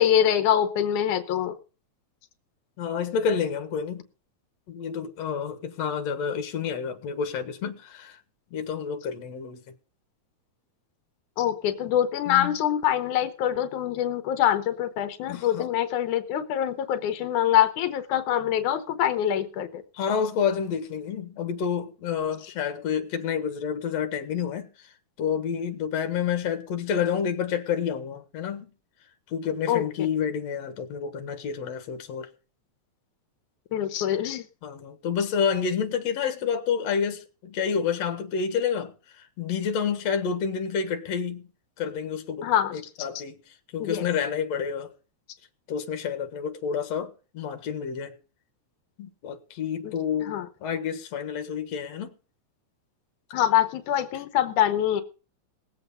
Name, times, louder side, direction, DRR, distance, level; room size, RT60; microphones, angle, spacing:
voice 1, 0.0-1.5 11.4-19.8 29.7-29.8 33.7-34.5 42.4-42.8 43.8-44.1 49.8-49.9 50.3-50.5 53.3-55.0, left 10 dB, 90° left, 2.4 m, -24 dB
voice 2, 2.8-4.0 4.7-8.2 8.5-9.6 12.3-12.6 15.3-15.7 19.9-24.7 25.2-28.7 29.3-32.3 34.6-41.5 41.8-43.4 43.7-44.9 45.7-48.2 49.0-52.1, left 7 dB, 65° left, 2.6 m, -29 dB
19.0 x 7.9 x 5.5 m
omnidirectional pair, 3.4 m